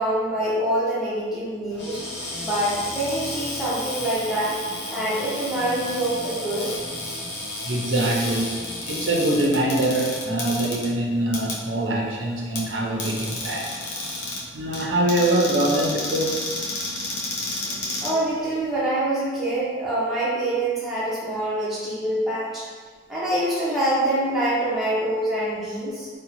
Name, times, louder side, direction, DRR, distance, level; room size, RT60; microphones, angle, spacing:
voice 1, 0.0-2.0 2.4-4.6 4.9-6.8 13.5-13.6 18.0-22.6 23.1-26.1, right 1 dB, ahead, -10 dB, 0.6 m, -25 dB
Cupboard open or close, 1.7-18.8, left 2 dB, 70° left, 0.6 m, -32 dB
voice 2, 7.6-13.7 14.5-16.4, right 1 dB, 85° right, -1 dB, 0.5 m, -24 dB
2.6 x 2.1 x 2.9 m, 1.5 s
head